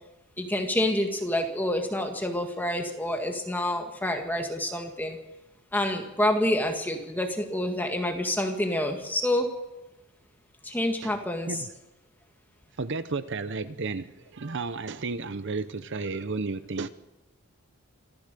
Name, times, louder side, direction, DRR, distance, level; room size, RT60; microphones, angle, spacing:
voice 1, 0.4-5.2 5.7-9.5 10.6-11.7, left 1 dB, 10° left, 3 dB, 1.9 m, -28 dB
voice 2, 12.8-16.9, right 3 dB, 55° right, 12 dB, 0.8 m, -32 dB
26.0 x 15.0 x 6.8 m, 0.98 s
head